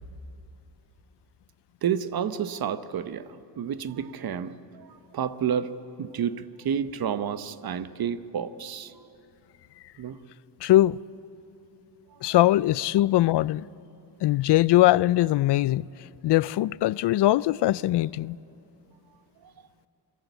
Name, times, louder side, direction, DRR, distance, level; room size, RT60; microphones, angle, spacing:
voice 1, 1.8-5.7 6.0-9.1 10.0-10.2 12.2-12.3 19.4-19.5, right 8 dB, 60° right, 1.0 m, -30 dB
voice 2, 10.6-11.0 12.2-13.6 14.2-15.9 16.2-18.4, left 15 dB, 75° left, 0.5 m, -21 dB
28.5 x 22.0 x 8.1 m
cardioid pair, 125°, 42 cm